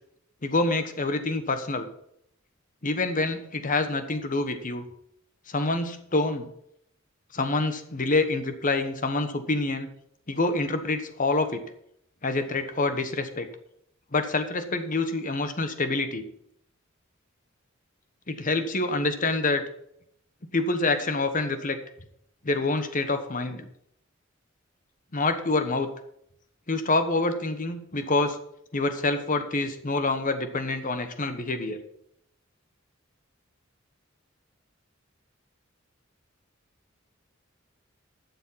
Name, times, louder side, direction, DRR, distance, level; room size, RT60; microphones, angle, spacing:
voice 1, 0.4-1.9 2.8-4.8 5.5-6.5 7.3-9.9 10.3-11.6 12.2-13.5 14.1-16.2 18.3-19.6 20.5-21.8 22.4-23.7 25.1-25.9 26.7-28.4 28.7-31.8, left 2 dB, 45° left, 9 dB, 1.2 m, -26 dB
12.0 x 7.2 x 5.8 m, 0.73 s
head